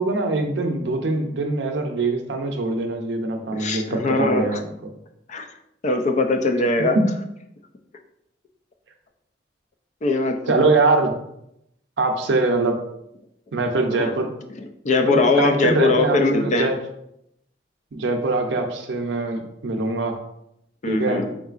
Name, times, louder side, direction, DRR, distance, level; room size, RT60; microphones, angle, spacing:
voice 1, 0.0-4.9 6.9-7.0 10.5-11.1 12.0-12.8 13.5-14.3 15.0-16.8 17.9-20.2 20.9-21.2, right 3 dB, 75° right, 4 dB, 0.5 m, -23 dB
voice 2, 3.6-4.6 5.3-5.5 5.8-7.0 10.0-10.7 13.9-14.1 14.6-16.7 20.8-21.3, left 3 dB, 40° left, 5 dB, 0.4 m, -21 dB
3.9 x 3.6 x 2.4 m, 0.80 s
head